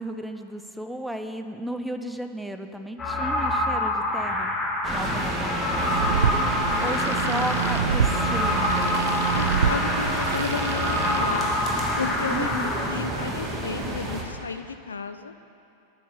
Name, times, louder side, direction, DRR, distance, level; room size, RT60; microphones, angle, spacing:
voice 1, 0.0-4.6 4.9-9.1 12.3-12.8, equal, ahead, 7 dB, 0.5 m, -34 dB
sound 1, 3.0-12.8, left 1 dB, 20° left, 1.1 m, -27 dB
sound 2, 4.8-14.2, right 2 dB, 15° right, 1.3 m, -29 dB
sound 3, 5.7-11.2, right 7 dB, 65° right, 0.3 m, -29 dB
voice 2, 7.2-7.5 9.3-11.5 12.0-15.3, left 5 dB, 75° left, 11 dB, 0.3 m, -33 dB
9.1 x 5.7 x 6.8 m, 2.7 s
figure-of-eight pair, 90°, 0 cm